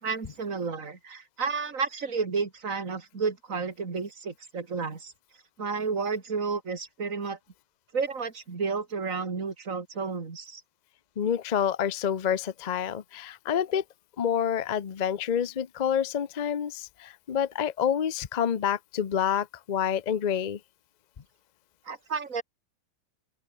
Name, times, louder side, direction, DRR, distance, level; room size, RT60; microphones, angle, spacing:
voice 1, 0.0-5.1 5.6-7.4 7.9-10.6 21.8-22.4, right 5 dB, 45° right, 3.0 m, -31 dB
voice 2, 11.2-13.8 14.2-20.6, left 8 dB, 70° left, 0.4 m, -28 dB
open air
omnidirectional pair, 2.0 m